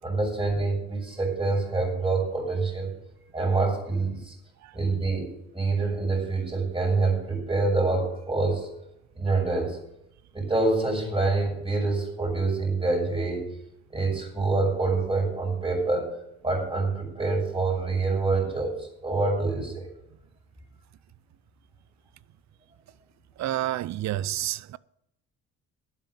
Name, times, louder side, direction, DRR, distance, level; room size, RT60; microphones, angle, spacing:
voice 1, 0.0-2.9 3.3-4.3 4.7-8.7 9.2-9.8 10.3-13.4 13.9-16.1 16.4-19.9, right 3 dB, 15° right, 6.2 m, -26 dB
voice 2, 23.4-24.8, right 14 dB, 65° right, 0.6 m, -29 dB
11.5 x 9.3 x 6.5 m
cardioid pair, 90°, 30 cm